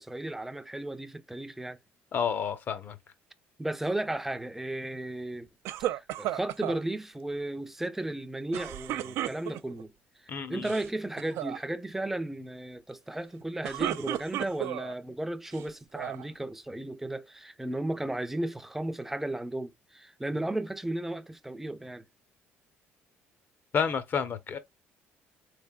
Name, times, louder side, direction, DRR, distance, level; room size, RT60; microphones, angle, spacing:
voice 1, 0.0-1.8 3.6-5.5 5.8-9.9 10.5-22.0, right 1 dB, 5° right, 0.5 m, -34 dB
voice 2, 2.1-2.9 10.3-10.7 23.7-24.6, left 7 dB, 45° left, 0.8 m, -30 dB
sound 1, 5.7-6.8 8.5-9.8 10.5-10.9 11.2-11.6 13.4-14.9 15.5-16.3, right 13 dB, 75° right, 0.3 m, -34 dB
3.5 x 3.2 x 2.3 m
cardioid pair, 95°, 5 cm